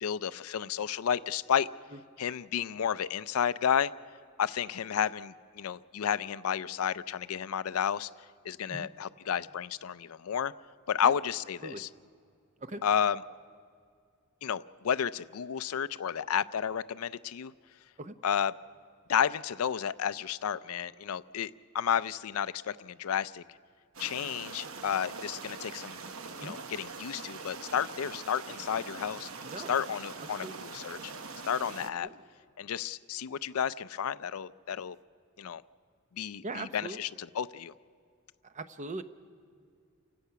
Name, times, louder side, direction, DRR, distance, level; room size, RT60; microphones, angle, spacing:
voice 1, 0.0-1.7 2.2-3.9 4.4-8.1 8.4-10.5 10.9-11.9 12.8-13.2 14.4-17.5 18.2-18.5 19.1-23.4 24.0-26.0 26.4-29.3 29.7-31.1 31.5-32.1 32.6-35.0 35.4-35.6 36.1-37.7, left 8 dB, 85° left, 15 dB, 0.4 m, -31 dB
sound 1, 23.9-31.9, right 4 dB, 70° right, 1.0 m, -43 dB
voice 2, 29.4-29.7 30.4-30.6 32.0-32.2 36.4-37.0 38.4-39.0, right 2 dB, 35° right, 10 dB, 0.7 m, -40 dB
29.5 x 16.5 x 5.8 m, 2.2 s
head